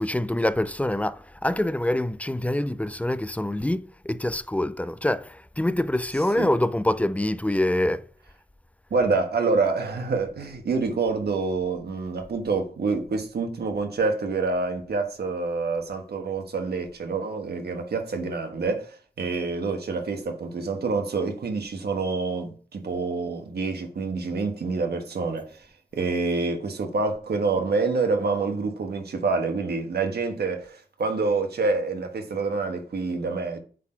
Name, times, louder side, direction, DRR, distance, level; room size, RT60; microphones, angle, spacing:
voice 1, 0.0-8.0, left 1 dB, 10° left, 0.3 m, -25 dB
voice 2, 8.9-25.6 25.9-33.6, right 4 dB, 80° right, 1.3 m, -27 dB
8.3 x 4.0 x 4.4 m
wide cardioid pair, 115°, 16 cm